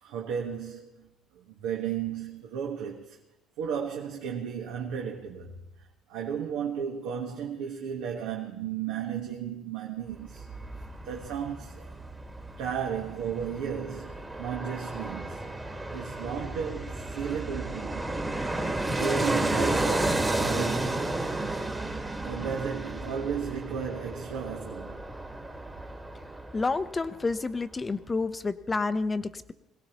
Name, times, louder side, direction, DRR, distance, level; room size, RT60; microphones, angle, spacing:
voice 1, 0.0-1.1 1.3-3.2 3.6-5.6 6.1-10.5 11.0-11.9 12.6-15.5 15.9-18.0 18.8-21.0 22.2-25.0, right 7 dB, 85° right, 1.5 m, -34 dB
Fixed-wing aircraft airplane, 10.1-27.1 27.4-27.5, right 2 dB, 15° right, 1.4 m, -32 dB
voice 2, 26.5-29.5, left 3 dB, 20° left, 0.7 m, -29 dB
22.0 x 17.5 x 3.0 m
cardioid pair, 115°, 0 cm